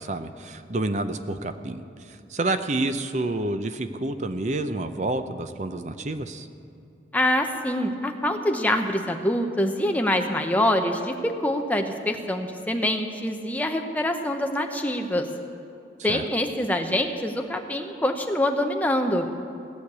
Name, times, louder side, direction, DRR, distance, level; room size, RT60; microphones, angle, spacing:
voice 1, 0.0-6.5 16.1-16.3, right 2 dB, 40° right, 9 dB, 0.6 m, -29 dB
voice 2, 7.1-15.2 16.0-19.3, left 1 dB, 10° left, 4 dB, 0.7 m, -25 dB
17.5 x 6.5 x 8.4 m, 2.6 s
head